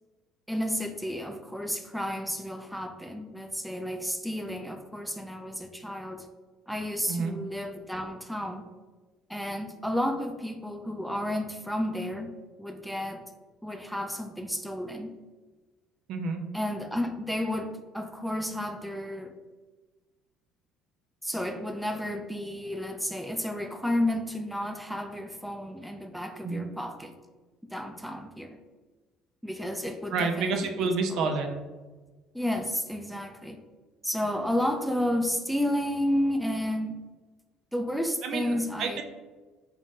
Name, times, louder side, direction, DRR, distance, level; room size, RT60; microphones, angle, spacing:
voice 1, 0.5-6.3 6.7-8.7 9.3-12.3 12.6-13.2 13.6-15.1 16.5-19.3 21.2-27.1 27.7-28.6 29.4-31.3 32.3-33.6 34.0-37.0 37.7-39.0, left 1 dB, ahead, 4 dB, 0.5 m, -32 dB
voice 2, 16.1-16.4 26.4-26.7 30.1-31.6 38.2-39.0, right 4 dB, 65° right, 4 dB, 0.5 m, -29 dB
3.8 x 2.5 x 3.6 m, 1.3 s
supercardioid pair, 75°, 0 cm